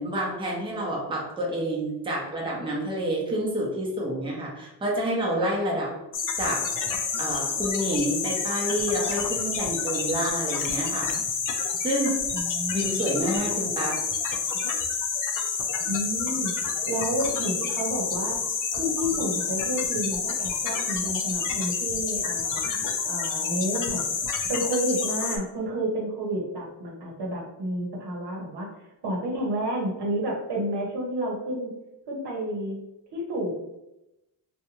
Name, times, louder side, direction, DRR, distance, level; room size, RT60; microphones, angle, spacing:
voice 1, 0.0-5.9 6.4-6.6 7.2-11.1 11.8-12.1 12.7-14.0, right 1 dB, 10° right, -3 dB, 0.7 m, -28 dB
sound 1, 6.1-25.4, left 5 dB, 50° left, 0.4 m, -29 dB
voice 2, 12.3-13.1 15.9-16.5 16.8-18.4 18.7-22.6 23.0-24.1 24.5-28.7 29.0-31.7 32.1-32.8 33.1-33.5, right 1 dB, 65° right, -1 dB, 0.9 m, -30 dB
2.5 x 2.2 x 2.9 m, 0.92 s
cardioid pair, 110°, 43 cm